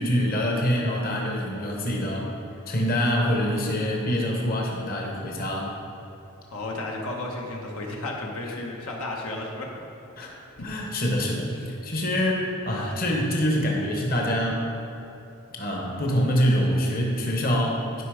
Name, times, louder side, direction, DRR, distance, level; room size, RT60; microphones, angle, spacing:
voice 1, 0.0-2.3 2.7-5.7 10.2-10.3 10.6-14.7 15.6-18.0, equal, 40° left, -1 dB, 1.1 m, -25 dB
voice 2, 6.5-9.7 10.8-10.9, left 2 dB, 80° left, -1 dB, 1.2 m, -33 dB
11.0 x 5.3 x 4.9 m, 2.9 s
head